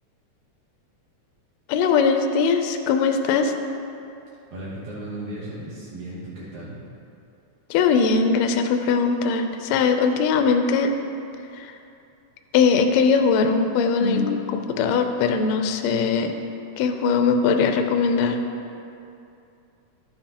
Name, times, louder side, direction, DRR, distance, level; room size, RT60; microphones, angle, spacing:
voice 1, 1.7-3.5 7.7-10.9 11.5-11.7 12.5-16.3 16.8-18.4, left 5 dB, 80° left, 6 dB, 1.6 m, -20 dB
voice 2, 4.5-6.8, right 1 dB, 75° right, -8 dB, 2.7 m, -35 dB
12.0 x 7.5 x 2.9 m, 2.7 s
omnidirectional pair, 3.5 m